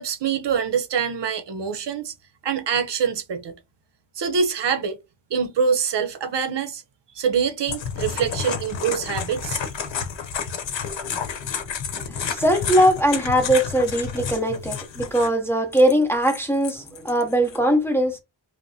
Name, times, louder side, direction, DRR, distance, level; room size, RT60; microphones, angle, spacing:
voice 1, 0.0-2.1 2.4-3.5 4.2-5.0 5.3-6.8 7.1-9.6, right 6 dB, 60° right, 0.7 m, -25 dB
sound 1, 7.7-15.3 15.7-17.6, left 6 dB, 65° left, 0.9 m, -30 dB
voice 2, 12.3-18.2, equal, 5° left, 0.7 m, -20 dB
5.1 x 2.1 x 2.7 m
wide cardioid pair, 130°, 48 cm